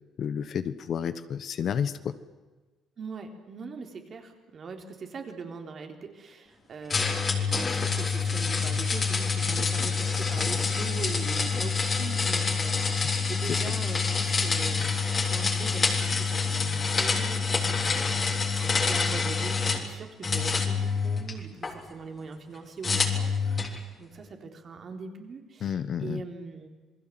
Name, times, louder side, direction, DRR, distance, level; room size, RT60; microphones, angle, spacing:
voice 1, 0.2-2.1 13.5-13.7 25.6-26.2, left 8 dB, 50° left, 13 dB, 1.2 m, -31 dB
voice 2, 3.0-26.7, right 4 dB, 40° right, 4 dB, 3.9 m, -42 dB
sound 1, 6.9-19.9 20.2-21.7 22.8-23.8, left 5 dB, 30° left, 3.4 m, -27 dB
28.0 x 21.0 x 7.7 m, 1.3 s
cardioid pair, 130°, 0 cm